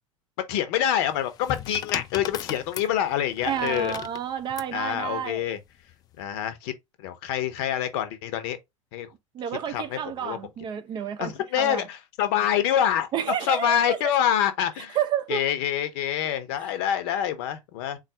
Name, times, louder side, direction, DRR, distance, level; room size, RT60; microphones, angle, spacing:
voice 1, 0.5-3.9 4.7-5.6 6.2-6.7 7.0-8.6 8.9-9.1 9.7-10.4 11.2-13.1 13.4-15.0 15.3-18.0, left 10 dB, 50° left, 0.9 m, -26 dB
sound 1, 1.1-4.8 5.8-6.2, left 11 dB, 25° left, 0.3 m, -37 dB
voice 2, 3.4-5.5 9.3-11.9 13.1-14.0 14.9-15.4, right 8 dB, 25° right, 0.6 m, -30 dB
4.0 x 2.4 x 4.1 m
figure-of-eight pair, 80°, 17 cm